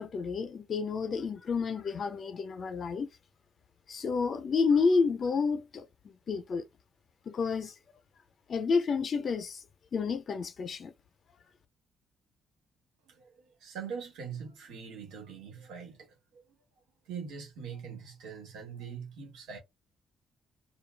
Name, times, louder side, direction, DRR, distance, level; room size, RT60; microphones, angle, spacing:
voice 1, 0.0-3.1 3.9-5.8 6.3-6.6 7.3-7.7 8.5-9.6 9.9-10.9, left 5 dB, 50° left, 0.6 m, -30 dB
voice 2, 13.1-16.1 16.3-16.5 17.1-19.6, right 6 dB, 85° right, 1.2 m, -43 dB
2.4 x 2.3 x 3.2 m
cardioid pair, 90°, 0 cm